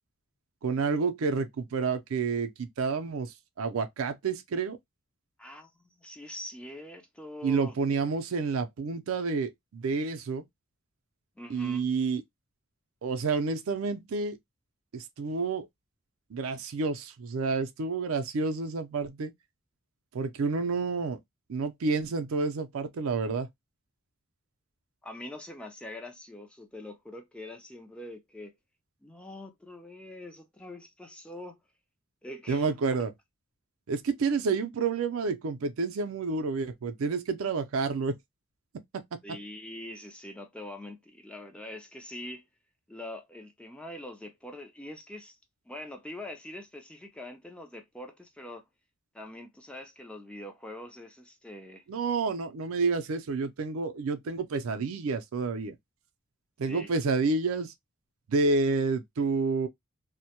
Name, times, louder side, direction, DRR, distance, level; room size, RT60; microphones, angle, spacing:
voice 1, 0.6-4.8 7.4-10.4 11.5-12.2 13.0-14.4 14.9-15.7 16.3-19.3 20.1-21.2 21.5-23.5 32.5-33.1 33.9-38.2 38.9-39.2 51.9-55.7 56.6-57.7 58.3-59.7, right 4 dB, 80° right, 0.4 m, -29 dB
voice 2, 5.4-7.8 11.4-11.8 25.0-28.6 29.0-31.6 32.2-32.7 39.2-42.5 42.9-45.4 45.7-48.7 49.1-51.8 56.7-56.9, left 1 dB, 5° left, 0.3 m, -43 dB
2.1 x 2.1 x 2.7 m
head